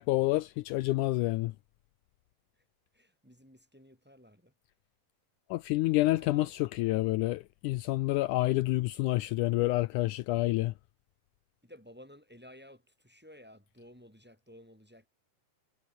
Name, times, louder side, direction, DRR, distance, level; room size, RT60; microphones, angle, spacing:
voice 1, 0.0-1.5 5.5-10.7, left 18 dB, 80° left, 2.0 m, -28 dB
voice 2, 2.9-4.5 6.2-6.5 11.6-15.1, equal, 5° right, 4.5 m, -54 dB
omnidirectional pair, 3.9 m